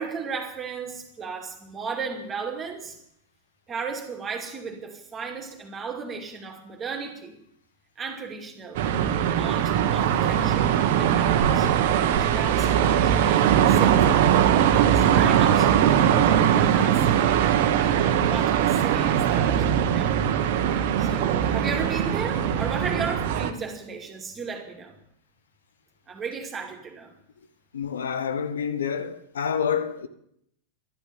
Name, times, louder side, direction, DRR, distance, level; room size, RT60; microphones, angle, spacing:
voice 1, 0.0-3.0 3.7-7.4 8.0-8.8 9.3-11.7 12.2-17.4 18.1-20.2 21.0-24.9 26.1-27.1, right 5 dB, 20° right, 2.5 m, -35 dB
sound 1, 8.7-23.5, right 9 dB, 50° right, 1.2 m, -21 dB
voice 2, 27.7-30.1, left 7 dB, 65° left, 0.9 m, -28 dB
12.0 x 11.5 x 8.8 m
figure-of-eight pair, 90°, 0 cm